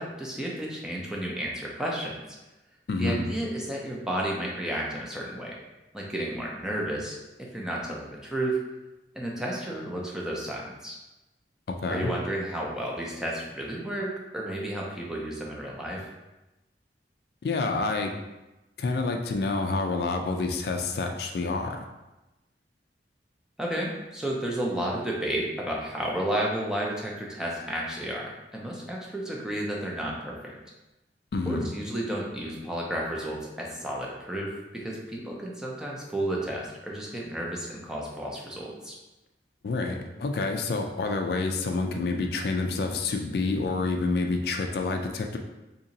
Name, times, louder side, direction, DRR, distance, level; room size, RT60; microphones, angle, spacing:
voice 1, 0.0-2.2 3.0-5.6 5.9-8.6 9.1-11.0 11.9-16.1 23.6-30.5 31.5-39.0, right 1 dB, 5° right, -3 dB, 0.5 m, -32 dB
voice 2, 2.9-3.3 11.7-12.1 17.4-18.1 18.8-21.8 31.3-31.7 39.6-45.4, left 3 dB, 60° left, 4 dB, 0.3 m, -28 dB
2.8 x 2.6 x 3.9 m, 1.0 s
head